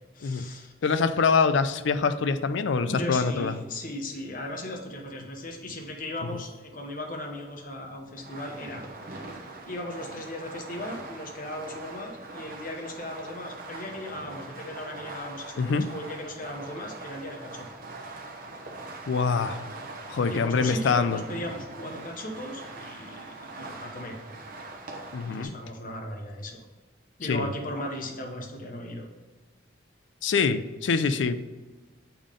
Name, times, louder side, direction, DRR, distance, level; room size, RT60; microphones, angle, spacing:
voice 1, 0.1-0.7 2.8-8.8 9.7-17.7 20.3-24.2 25.2-26.6 27.2-29.1, left 1 dB, 45° left, 2 dB, 0.9 m, -37 dB
voice 2, 0.8-3.5 15.6-15.9 19.1-19.6 20.1-21.2 25.1-25.5 27.2-27.5 30.2-31.4, left 5 dB, 65° left, 11 dB, 0.4 m, -25 dB
Fireworks, 8.2-25.4, right 2 dB, 45° right, 0.9 m, -42 dB
7.0 x 3.7 x 5.0 m, 1.3 s
head